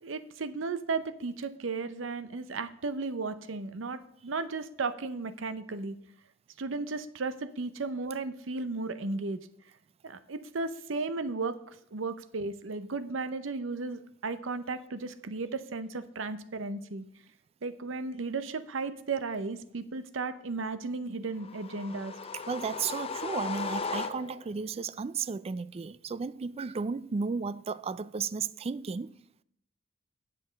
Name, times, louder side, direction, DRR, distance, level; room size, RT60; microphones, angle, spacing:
voice 1, 0.0-6.0 6.6-9.4 10.0-17.0 17.6-22.1, right 3 dB, 70° right, 0.7 m, -35 dB
sound 1, 21.4-24.6, left 4 dB, 30° left, 0.6 m, -37 dB
voice 2, 22.5-29.1, right 5 dB, 30° right, 0.3 m, -34 dB
8.6 x 7.7 x 5.1 m
head